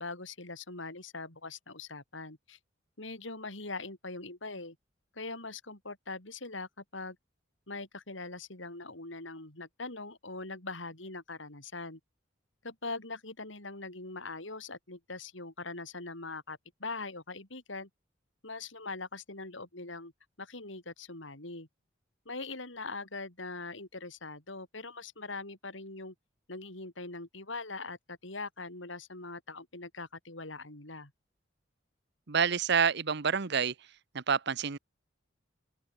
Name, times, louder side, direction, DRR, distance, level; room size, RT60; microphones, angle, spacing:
voice 1, 0.0-2.6 3.0-4.8 5.1-7.2 7.7-12.0 12.6-17.9 18.4-20.1 20.4-21.7 22.3-26.1 26.5-31.1, left 3 dB, 75° left, 5.4 m, -42 dB
voice 2, 32.3-33.7 34.1-34.8, right 6 dB, 60° right, 1.0 m, -28 dB
open air
head